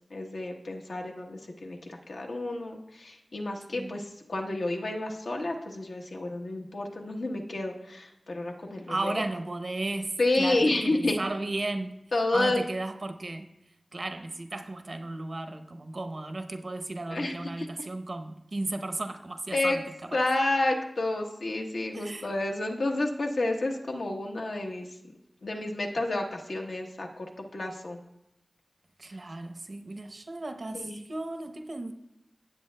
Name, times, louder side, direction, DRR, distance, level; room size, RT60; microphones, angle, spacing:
voice 1, 0.1-9.2 10.2-11.2 12.1-12.6 17.1-17.7 19.5-19.8 20.1-24.9 25.4-28.0 30.7-31.0, left 2 dB, 90° left, 1.0 m, -30 dB
voice 2, 8.9-12.0 12.3-13.5 13.9-19.8 21.9-22.3 29.0-31.9, right 2 dB, 60° right, 0.7 m, -35 dB
16.5 x 8.0 x 2.2 m
wide cardioid pair, 55°, 0 cm